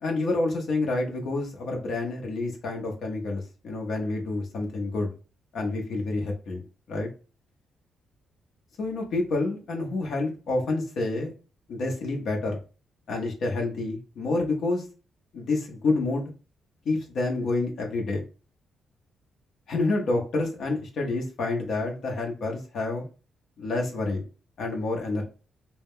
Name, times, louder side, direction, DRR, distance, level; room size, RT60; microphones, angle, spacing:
voice 1, 0.0-5.1 5.5-6.6 6.9-7.1 8.8-11.3 11.7-12.6 13.1-14.8 15.3-16.3 16.9-18.2 19.7-23.1 23.6-24.2 24.6-25.2, left 2 dB, 70° left, 1 dB, 0.6 m, -28 dB
2.2 x 2.1 x 3.4 m, 0.34 s
supercardioid pair, 60°, 0 cm